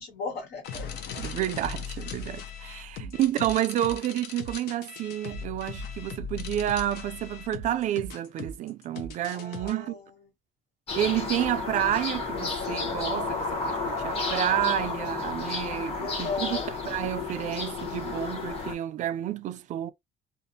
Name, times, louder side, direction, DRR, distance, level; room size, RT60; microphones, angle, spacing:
voice 1, 0.0-1.2 3.0-3.2 9.3-10.0 16.0-16.7, left 4 dB, 85° left, 1.4 m, -36 dB
sound 1, 0.6-9.7, left 5 dB, 70° left, 0.6 m, -38 dB
voice 2, 1.2-10.0 10.9-16.6 16.8-19.9, right 12 dB, 45° right, 0.4 m, -30 dB
sound 2, 10.9-18.7, left 3 dB, 35° left, 0.8 m, -32 dB
2.5 x 2.1 x 2.6 m
cardioid pair, 140°, 17 cm